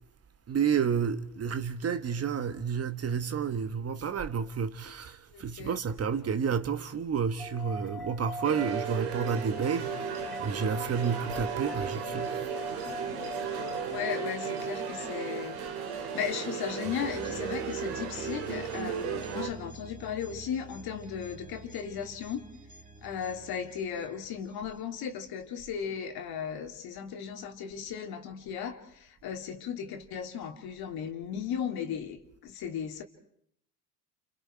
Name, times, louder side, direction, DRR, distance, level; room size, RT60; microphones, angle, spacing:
voice 1, 0.5-12.3, right 6 dB, 35° right, 1.5 m, -30 dB
voice 2, 5.3-5.8 13.9-15.6 15.9-22.4 23.0-33.0, left 8 dB, 55° left, 3.0 m, -36 dB
sound 1, 7.4-18.7, left 1 dB, ahead, 1.3 m, -42 dB
sound 2, 8.4-19.5, right 8 dB, 80° right, 3.5 m, -35 dB
sound 3, 14.7-25.5, right 3 dB, 20° right, 2.9 m, -50 dB
29.5 x 28.5 x 4.6 m
hypercardioid pair, 80°, 43 cm